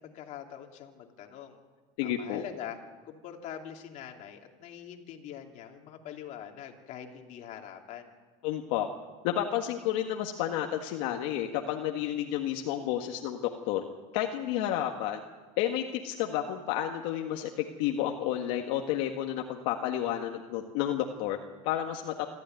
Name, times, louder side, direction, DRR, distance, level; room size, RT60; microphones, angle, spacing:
voice 1, 0.0-1.6 2.0-2.8 3.0-8.1, left 9 dB, 45° left, 2 dB, 2.9 m, -43 dB
voice 2, 2.0-2.4 8.4-8.9 9.2-13.4 13.7-13.8 14.1-15.2 15.6-21.4 21.6-22.1, left 11 dB, 70° left, 3 dB, 1.7 m, -31 dB
26.0 x 13.5 x 9.2 m, 1.3 s
supercardioid pair, 135°, 17 cm